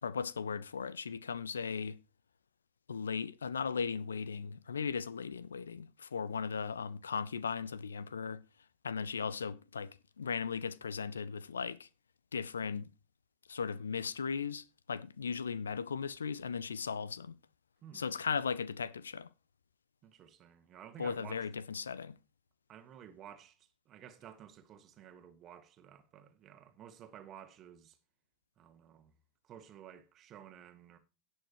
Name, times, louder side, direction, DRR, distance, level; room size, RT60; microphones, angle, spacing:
voice 1, 0.0-2.0 2.9-8.4 8.8-11.9 12.3-12.9 13.5-17.3 17.9-19.3 21.0-22.2, left 6 dB, 70° left, 0.5 m, -37 dB
voice 2, 20.0-21.5 22.7-23.6 23.9-28.0 28.6-29.1 29.4-31.0, right 9 dB, 30° right, 1.6 m, -53 dB
17.5 x 6.4 x 3.0 m
figure-of-eight pair, 90°, 0 cm